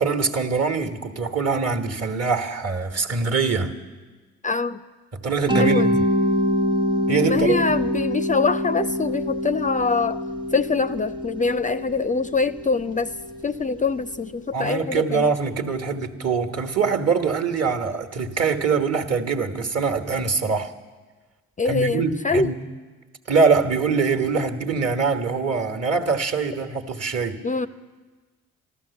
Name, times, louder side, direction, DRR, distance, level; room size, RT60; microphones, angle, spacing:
voice 1, 0.0-3.7 5.1-6.0 7.1-7.6 14.5-20.7 21.6-22.6 23.3-27.4, right 5 dB, 45° right, 1.3 m, -23 dB
voice 2, 4.4-4.8 5.6-5.9 7.3-10.2 10.5-13.1 13.4-15.3 21.6-22.5 27.4-27.7, left 4 dB, 25° left, 0.4 m, -24 dB
Mallet percussion, 5.5-14.2, equal, 15° right, 0.8 m, -25 dB
13.5 x 12.5 x 7.0 m
hypercardioid pair, 50°, 34 cm